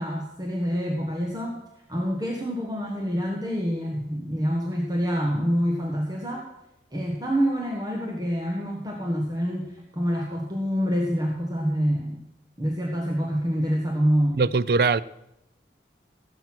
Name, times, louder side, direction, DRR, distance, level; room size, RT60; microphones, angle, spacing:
voice 1, 0.0-6.5 6.9-12.2 12.6-14.5, equal, 20° right, 1.3 m, -26 dB
voice 2, 14.4-15.0, right 4 dB, 55° right, 0.4 m, -21 dB
16.5 x 8.0 x 6.0 m
head